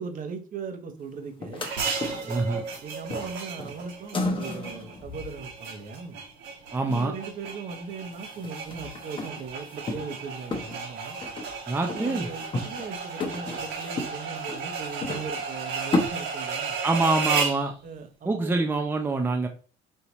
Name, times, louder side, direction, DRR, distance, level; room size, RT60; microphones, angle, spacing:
voice 1, 0.0-1.6 2.2-6.2 6.9-11.2 11.9-16.8 17.8-18.7, right 5 dB, 45° right, 6 dB, 1.0 m, -39 dB
sound 1, 1.4-2.8 3.1-5.8 7.9-8.0 8.2-10.3 10.5-11.6 11.9-12.9 13.2-16.1, left 2 dB, 25° left, 0.9 m, -33 dB
sound 2, 1.6-17.7, right 5 dB, 75° right, 1.8 m, -34 dB
voice 2, 2.3-2.6 6.7-7.1 11.7-12.3 16.8-17.7 18.3-19.5, right 3 dB, 10° right, 3 dB, 0.6 m, -25 dB
5.4 x 2.8 x 3.0 m, 0.38 s
supercardioid pair, 95°, 19 cm